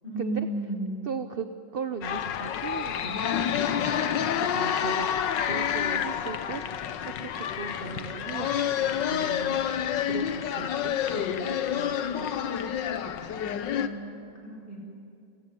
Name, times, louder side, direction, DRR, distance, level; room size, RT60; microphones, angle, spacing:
voice 1, 0.0-1.0 13.7-14.8, right 2 dB, 30° left, -2 dB, 7.2 m, -33 dB
voice 2, 1.1-1.5 1.7-4.1 4.4-5.1 5.4-6.9 7.2-12.8, right 6 dB, 50° right, 9 dB, 0.7 m, -38 dB
sound 1, 2.0-13.9, left 9 dB, 80° left, 1.6 m, -28 dB
30.0 x 16.0 x 9.8 m, 2.5 s
omnidirectional pair, 2.0 m